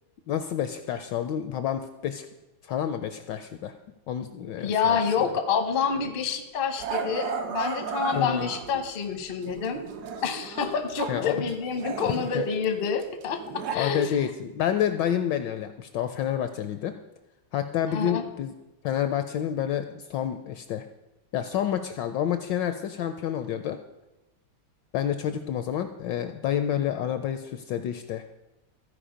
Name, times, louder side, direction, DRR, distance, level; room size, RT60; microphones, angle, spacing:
voice 1, 0.3-2.3 2.6-3.7 4.1-5.3 8.1-8.5 11.1-11.5 12.3-12.4 13.7-16.9 17.5-18.5 18.8-20.9 21.3-23.8 24.9-28.2, left 10 dB, 75° left, 9 dB, 1.0 m, -29 dB
voice 2, 4.6-9.8 10.2-14.2 17.9-18.2, left 6 dB, 55° left, 7 dB, 0.6 m, -28 dB
Growling, 5.8-6.0 6.8-8.9 9.4-11.2 11.5-13.8, right 6 dB, 65° right, 1.0 m, -34 dB
14.5 x 4.9 x 5.0 m, 0.98 s
omnidirectional pair, 2.3 m